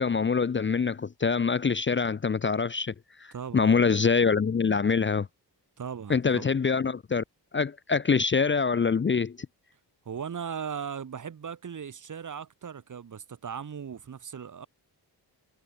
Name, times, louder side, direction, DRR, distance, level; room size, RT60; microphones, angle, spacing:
voice 1, 0.0-5.3 6.1-7.2 7.5-9.4, left 5 dB, 30° left, 0.6 m, -25 dB
voice 2, 3.3-3.7 5.8-6.5 10.1-14.7, right 7 dB, 45° right, 1.8 m, -38 dB
wide cardioid pair, 170°, 41 cm